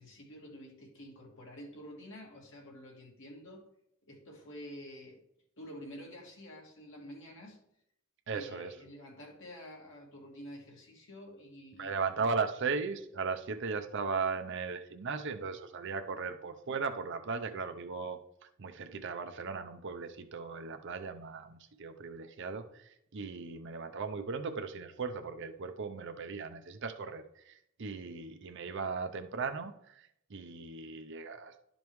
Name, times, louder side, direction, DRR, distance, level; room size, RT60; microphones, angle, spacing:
voice 1, 0.0-3.7 4.1-5.2 5.6-7.6 8.3-12.1, equal, 65° left, -1 dB, 2.0 m, -49 dB
voice 2, 8.3-8.7 11.8-18.2 18.6-31.6, right 4 dB, 60° right, 7 dB, 0.6 m, -37 dB
11.5 x 5.2 x 3.1 m, 0.77 s
head